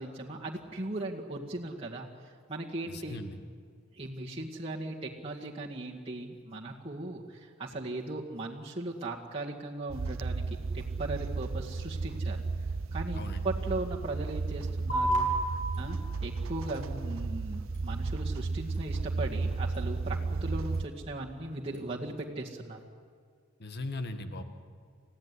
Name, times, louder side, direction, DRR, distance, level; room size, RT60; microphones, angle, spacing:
voice 1, 0.0-3.2 3.9-10.4 10.7-12.4 12.9-22.8, right 2 dB, 30° right, -4 dB, 2.0 m, -38 dB
voice 2, 2.9-3.3 13.1-13.4 23.6-24.4, left 2 dB, 55° left, 8 dB, 1.7 m, -38 dB
chair lift, 9.9-20.9, right 3 dB, 80° right, 0.8 m, -34 dB
sound 1, 14.9-21.9, right 2 dB, 40° left, 5.7 m, -37 dB
29.5 x 15.5 x 9.9 m, 2.1 s
head